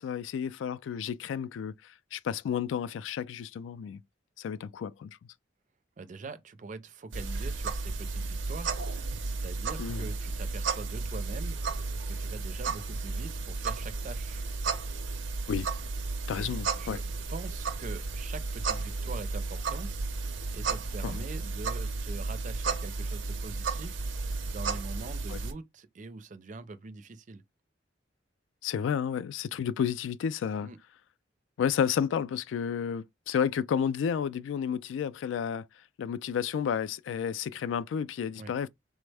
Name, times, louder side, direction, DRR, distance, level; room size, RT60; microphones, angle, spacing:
voice 1, 0.0-4.0 4.4-5.2 9.8-10.1 15.5-15.7 16.3-17.0 21.0-21.2 25.3-25.4 28.6-30.7 31.6-35.7 36.0-38.7, left 7 dB, 85° left, 0.3 m, -31 dB
voice 2, 6.0-14.4 16.3-17.0 17.3-27.4 30.6-30.8 38.4-38.5, right 3 dB, 45° right, 0.4 m, -44 dB
sound 1, 7.1-25.5, right 3 dB, 85° right, 0.6 m, -33 dB
3.4 x 2.1 x 3.3 m
head